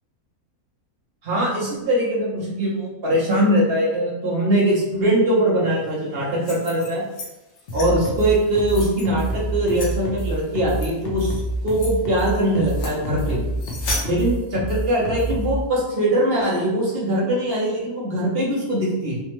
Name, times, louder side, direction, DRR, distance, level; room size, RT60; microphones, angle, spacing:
voice 1, 1.2-7.0 7.7-13.4 14.0-19.2, right 1 dB, 55° right, -5 dB, 0.7 m, -21 dB
sound 1, 6.3-7.3 7.6-7.9 8.4-9.0 9.7-9.9 10.7-10.9 11.3-11.4 11.7-11.9 12.6-13.0 13.6-14.0, left 2 dB, 85° left, 1.2 m, -32 dB
sound 2, 7.7-15.6, right 1 dB, 55° left, 0.6 m, -27 dB
3.3 x 2.0 x 2.9 m, 1.0 s
omnidirectional pair, 1.5 m